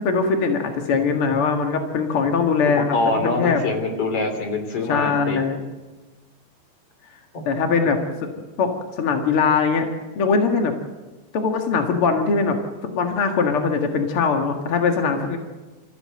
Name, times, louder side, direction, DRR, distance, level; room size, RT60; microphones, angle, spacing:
voice 1, 0.0-3.0 3.2-3.6 4.9-5.6 7.4-8.0 8.6-9.9 10.1-10.7 11.3-12.6 12.8-15.4, left 5 dB, 70° left, 4 dB, 1.3 m, -21 dB
voice 2, 2.6-5.4 7.3-7.4, left 3 dB, 35° left, 5 dB, 3.6 m, -24 dB
28.0 x 14.5 x 7.8 m, 1.2 s
omnidirectional pair, 5.3 m